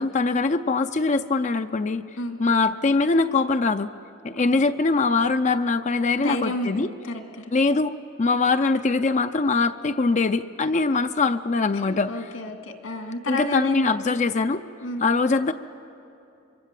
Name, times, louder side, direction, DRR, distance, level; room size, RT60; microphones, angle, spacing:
voice 1, 0.0-2.0 2.4-3.9 4.2-6.9 7.5-12.3 13.3-14.6 15.0-15.5, left 3 dB, 35° left, 9 dB, 0.5 m, -22 dB
voice 2, 6.2-7.5 11.7-13.9 14.8-15.0, left 1 dB, 70° left, 5 dB, 2.2 m, -31 dB
26.0 x 24.0 x 7.6 m, 2.7 s
head